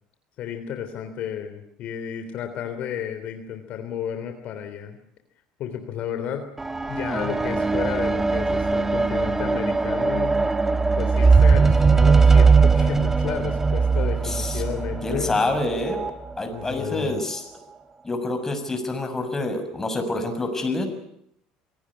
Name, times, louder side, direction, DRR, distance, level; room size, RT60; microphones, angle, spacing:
voice 1, 0.4-5.0 5.6-6.5 6.9-10.4 11.0-15.6 16.5-17.2, left 9 dB, 55° left, 7 dB, 3.4 m, -32 dB
sound 1, 6.6-16.1 16.9-17.0, right 4 dB, 15° right, 1.4 m, -20 dB
voice 2, 14.2-14.6 15.0-16.0 16.4-17.4 18.0-20.9, left 2 dB, 15° left, 6 dB, 6.7 m, -27 dB
26.0 x 18.0 x 9.9 m, 0.73 s
supercardioid pair, 110°, 3 cm